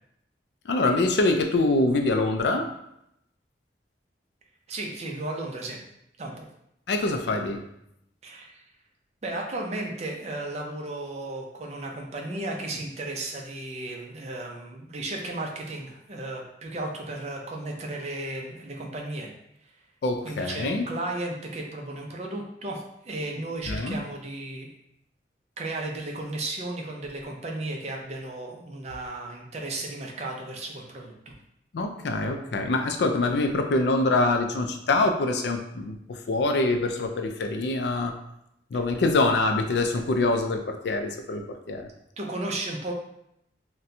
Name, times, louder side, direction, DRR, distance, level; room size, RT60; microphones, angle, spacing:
voice 1, 0.7-2.7 6.9-7.6 20.0-20.9 23.7-24.0 31.7-38.1 38.7-41.9, left 2 dB, 75° left, 5 dB, 0.4 m, -25 dB
voice 2, 4.7-5.8 6.2-6.5 8.2-8.6 9.2-19.3 20.2-24.7 25.6-31.1 40.0-40.2 42.2-42.9, right 2 dB, 40° right, 0 dB, 0.5 m, -34 dB
4.1 x 2.2 x 2.6 m, 0.80 s
head